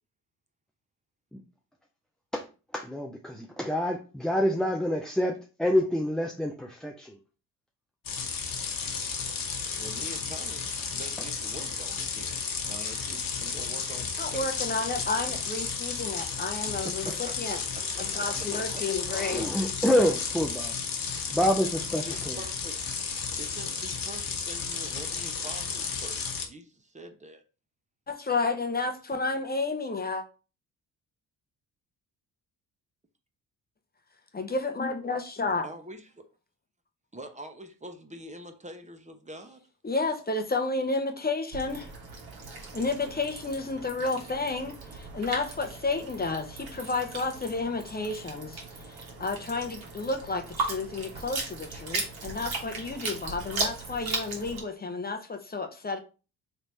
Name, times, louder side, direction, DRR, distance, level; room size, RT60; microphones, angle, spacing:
voice 1, 2.7-7.2 19.1-20.7 21.3-22.4, equal, ahead, 0.4 m, -27 dB
sound 1, 8.0-26.5, left 5 dB, 50° left, 1.1 m, -33 dB
voice 2, 9.7-14.5 16.8-17.6 18.0-18.1 18.7-18.9 22.0-22.8 23.4-26.2 26.4-27.4 35.4-36.2 37.1-39.6, right 1 dB, 15° right, 0.8 m, -45 dB
voice 3, 14.2-17.6 18.0-19.4 28.1-30.2 34.3-35.6 39.8-41.9 42.7-56.0, left 3 dB, 25° left, 0.8 m, -31 dB
sound 2, 41.5-54.6, right 3 dB, 60° right, 1.6 m, -37 dB
3.3 x 3.1 x 3.9 m
supercardioid pair, 60°, 41 cm